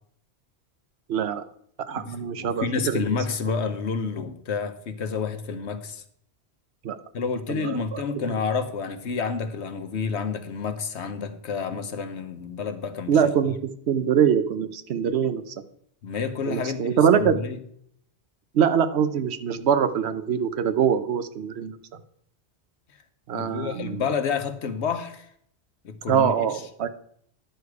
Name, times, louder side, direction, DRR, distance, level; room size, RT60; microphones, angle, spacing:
voice 1, 1.1-1.4 1.9-3.0 6.8-7.0 7.6-8.4 13.1-15.5 16.5-17.4 18.5-21.8 23.3-24.0 26.1-26.9, right 8 dB, 75° right, 1.0 m, -23 dB
voice 2, 1.9-6.0 7.1-13.2 16.0-17.6 23.3-25.3 25.8-26.6, left 5 dB, 90° left, 1.2 m, -29 dB
10.5 x 6.7 x 4.7 m
omnidirectional pair, 1.1 m